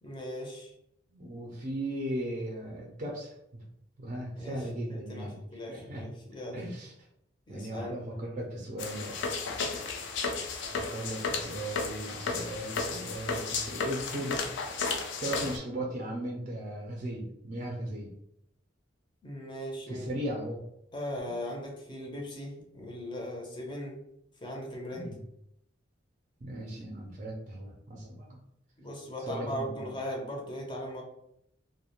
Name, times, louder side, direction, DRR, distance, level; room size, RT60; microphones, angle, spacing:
voice 1, 0.0-0.7 4.4-6.6 7.5-8.0 19.2-20.1 20.9-24.0 24.4-25.2 28.8-31.0, equal, 25° left, -1 dB, 0.6 m, -39 dB
voice 2, 1.1-3.3 4.0-5.4 5.7-6.0 6.5-6.9 7.5-9.2 10.7-14.5 15.2-18.1 19.9-20.6 24.9-25.1 26.4-28.4 29.2-29.9, right 1 dB, 40° right, -1 dB, 0.4 m, -37 dB
sound 1, 8.8-15.6, left 4 dB, 75° left, 0.4 m, -33 dB
2.4 x 2.1 x 2.8 m, 0.78 s
head